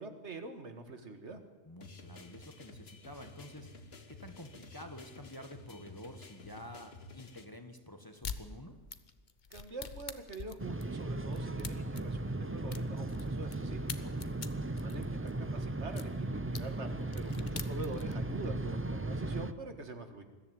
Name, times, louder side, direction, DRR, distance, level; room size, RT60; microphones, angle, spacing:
voice 1, 0.0-1.4 9.5-14.1 14.8-16.9 17.1-20.2, right 3 dB, 70° right, 7 dB, 2.0 m, -45 dB
voice 2, 1.6-3.7 4.1-8.8 14.0-14.4, equal, 20° left, 6 dB, 1.4 m, -49 dB
sound 1, 1.8-7.4, left 3 dB, 60° left, 1.6 m, -52 dB
sound 2, 8.2-8.4 8.9-13.6 13.9-16.1 16.5-16.6 17.0-18.2, left 6 dB, 40° left, 1.0 m, -44 dB
sound 3, 10.6-19.5, right 2 dB, 20° right, 0.4 m, -36 dB
21.0 x 14.0 x 9.2 m, 1.3 s
omnidirectional pair, 1.2 m